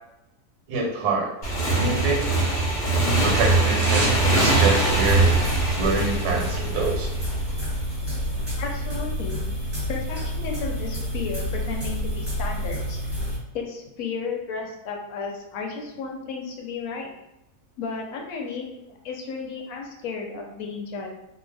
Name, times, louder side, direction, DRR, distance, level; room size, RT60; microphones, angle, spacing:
voice 1, 0.7-1.3 1.7-2.3 2.9-5.4 5.7-7.1, right 3 dB, 85° right, 0 dB, 1.2 m, -26 dB
Motorcycle / Engine, 1.4-7.8, right 2 dB, 50° left, 0.6 m, -22 dB
sound 1, 1.5-2.7 3.0-4.3 4.6-4.7, right 2 dB, 65° right, 0.9 m, -34 dB
sound 2, 4.9-13.4, equal, 5° right, 1.1 m, -29 dB
voice 2, 8.6-9.4 9.9-13.0 13.5-17.1 17.8-21.1, left 5 dB, 70° left, 1 dB, 1.0 m, -33 dB
2.7 x 2.1 x 3.2 m, 0.88 s
omnidirectional pair, 1.7 m